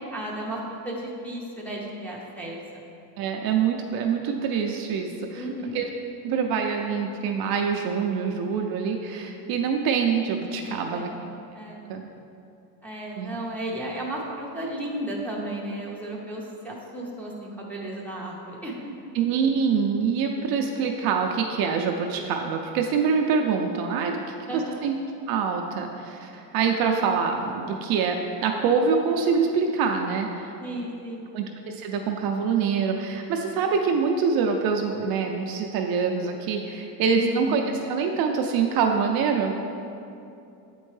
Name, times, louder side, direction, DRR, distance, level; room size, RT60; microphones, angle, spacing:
voice 1, 0.1-2.6 5.3-5.8 10.7-11.2 11.5-11.9 12.8-18.9 24.5-24.8 30.6-31.3 37.2-37.5, right 1 dB, 5° left, -5 dB, 0.6 m, -34 dB
voice 2, 3.2-5.5 5.7-5.9 6.2-11.1 11.9-12.0 13.2-13.4 19.1-24.2 24.5-24.9 25.3-30.5 31.3-37.6 37.9-39.5, right 6 dB, 50° right, 3 dB, 0.5 m, -25 dB
7.6 x 4.4 x 3.2 m, 2.7 s
cardioid pair, 130°, 49 cm